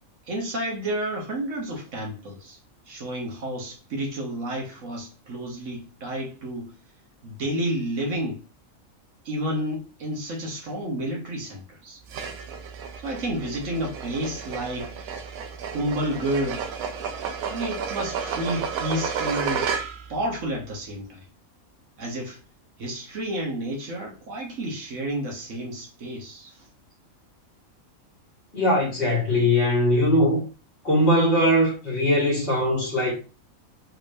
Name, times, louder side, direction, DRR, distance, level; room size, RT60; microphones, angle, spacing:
voice 1, 0.3-2.6 2.9-6.7 7.2-8.4 9.2-12.0 13.0-14.9 15.7-16.7 17.5-19.7 20.1-21.2 22.0-22.4 22.8-26.7, right 1 dB, 60° right, 1.2 m, -30 dB
sound 1, 12.1-20.2, right 6 dB, 80° right, 1.1 m, -32 dB
voice 2, 28.5-30.4 30.8-33.1, left 1 dB, 50° left, 1.9 m, -21 dB
3.4 x 3.2 x 2.6 m
omnidirectional pair, 1.5 m